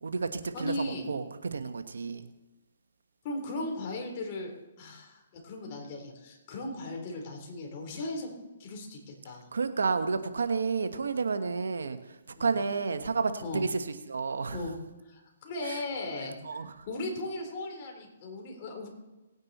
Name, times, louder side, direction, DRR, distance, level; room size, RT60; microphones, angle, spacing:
voice 1, 0.0-2.3 9.5-14.6 15.6-15.8 16.4-16.9, right 4 dB, 85° right, 9 dB, 1.2 m, -31 dB
voice 2, 0.5-1.1 3.2-4.5 4.8-8.3 8.6-9.0 9.2-9.5 12.4-12.5 13.4-13.7 14.5-14.7 15.1-18.9, left 2 dB, 40° left, 1 dB, 3.6 m, -37 dB
18.5 x 9.6 x 4.2 m, 1.1 s
hypercardioid pair, 145°, 0 cm